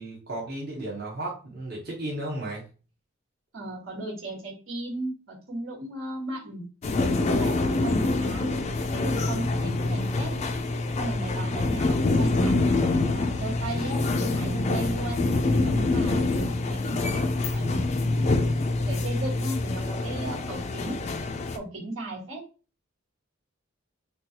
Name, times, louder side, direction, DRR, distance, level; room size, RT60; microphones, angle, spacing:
voice 1, 0.0-2.7 11.8-11.9 12.4-12.5, right 1 dB, 50° right, -3 dB, 0.9 m, -34 dB
voice 2, 3.5-6.6 7.3-8.5 8.9-10.3 11.0-15.3 15.6-18.4 18.8-21.0 21.5-22.4, right 1 dB, 90° right, -2 dB, 1.4 m, -36 dB
sound 1, 6.8-21.6, left 2 dB, 35° left, 0.3 m, -26 dB
3.9 x 2.3 x 2.8 m, 0.35 s
head